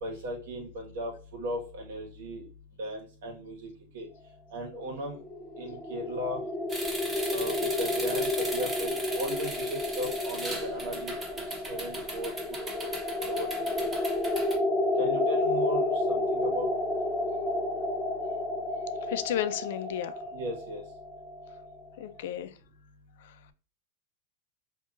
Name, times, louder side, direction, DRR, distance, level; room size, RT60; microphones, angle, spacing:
voice 1, 0.0-2.5 2.8-3.7 3.9-4.1 4.5-5.2 5.6-6.4 7.3-11.1 11.7-12.6 13.2-13.5 13.8-13.9 15.0-16.7 20.3-20.8, equal, 80° right, 1.4 m, -36 dB
sound 1, 5.0-21.9, left 2 dB, 5° left, 0.4 m, -31 dB
sound 2, 6.7-14.6, right 2 dB, 15° right, 0.9 m, -39 dB
voice 2, 19.1-20.1 22.0-22.5, left 11 dB, 75° left, 0.4 m, -32 dB
3.7 x 2.7 x 2.5 m
supercardioid pair, 135°, 0 cm